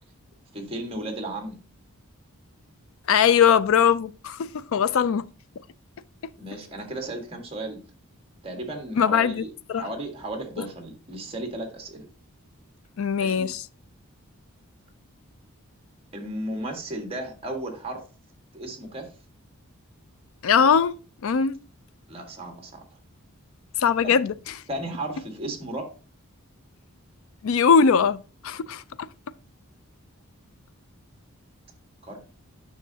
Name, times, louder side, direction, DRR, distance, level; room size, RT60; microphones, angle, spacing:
voice 1, 0.5-1.6 6.4-7.8 8.4-12.1 13.2-13.5 16.1-18.1 18.5-19.1 22.1-22.8 24.0-24.1 24.7-25.9 32.1-32.2, right 1 dB, 25° right, 1.6 m, -34 dB
voice 2, 3.1-5.3 9.0-9.4 9.7-9.9 10.6-10.7 13.0-13.6 20.4-20.9 21.2-21.6 23.8-24.3 27.4-29.1, left 6 dB, 65° left, 0.4 m, -21 dB
9.2 x 6.3 x 2.8 m
head